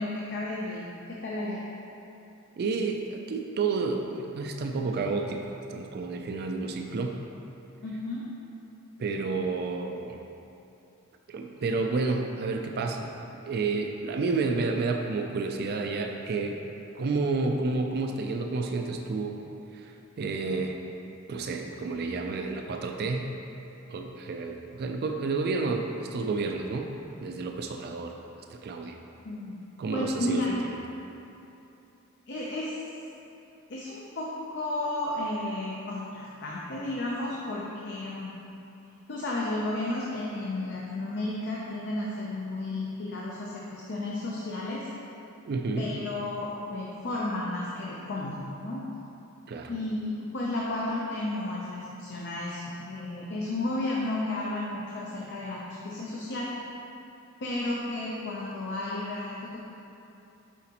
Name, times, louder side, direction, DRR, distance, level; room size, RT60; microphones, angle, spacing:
voice 1, 0.0-1.6 7.8-8.3 29.2-29.6 29.9-30.6 32.3-32.7 33.7-38.3 39.1-44.9 45.8-48.8 49.7-56.6 57.4-59.6, left 2 dB, 55° left, -5 dB, 0.6 m, -33 dB
voice 2, 2.6-7.2 9.0-10.2 11.3-13.1 13.4-16.6 16.9-19.4 19.7-20.8 21.3-23.3 23.9-26.9 27.2-28.2 28.5-29.0 29.8-30.7 45.5-45.9 49.5-49.7, right 3 dB, 50° right, 3 dB, 0.4 m, -30 dB
7.1 x 4.9 x 2.9 m, 2.8 s
head